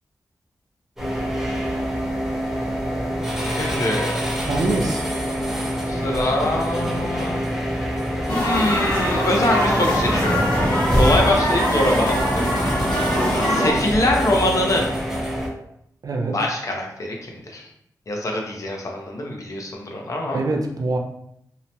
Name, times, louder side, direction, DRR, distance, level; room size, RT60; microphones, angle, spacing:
sound 1, 1.0-15.5, equal, 5° right, 0.9 m, -25 dB
voice 1, 3.5-4.2 5.9-7.4 8.3-10.4 11.0-12.5 13.2-14.8 16.3-17.7 18.1-20.4, left 1 dB, 50° left, 0 dB, 0.7 m, -24 dB
voice 2, 4.5-5.0 16.0-16.4 20.3-21.0, right 2 dB, 60° right, 2 dB, 0.5 m, -24 dB
sound 2, 8.3-13.7, equal, 80° left, 1.1 m, -23 dB
2.8 x 2.1 x 2.8 m, 0.74 s
cardioid pair, 55°, 7 cm